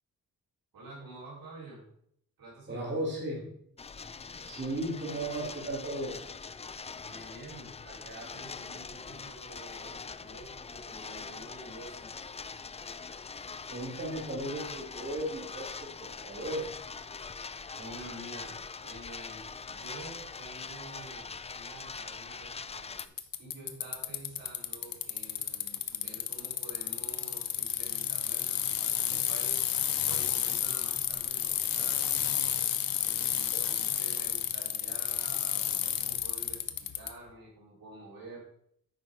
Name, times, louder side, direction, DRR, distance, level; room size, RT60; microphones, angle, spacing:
voice 1, 0.7-1.8 2.4-2.9 3.3-3.4 7.0-12.1 17.8-29.7 30.1-32.2 33.0-38.4, right 2 dB, 80° right, -5 dB, 4.0 m, -49 dB
voice 2, 2.7-3.5 4.4-6.1 13.7-16.7 33.5-33.6, right 1 dB, 30° right, -4 dB, 3.3 m, -35 dB
sound 1, 3.8-23.1, left 5 dB, 20° left, 0.3 m, -43 dB
Bicycle, 23.0-37.1, left 10 dB, 75° left, 0.8 m, -31 dB
9.0 x 5.5 x 4.7 m, 0.70 s
cardioid pair, 100°, 35 cm